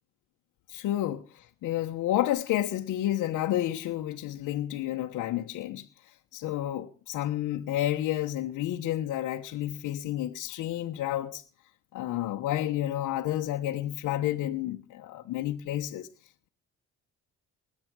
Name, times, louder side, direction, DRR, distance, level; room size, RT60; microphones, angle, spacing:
voice 1, 0.7-11.4 11.9-16.1, left 13 dB, 90° left, 1.2 m, -30 dB
20.5 x 8.7 x 6.2 m
cardioid pair, 90°, 30 cm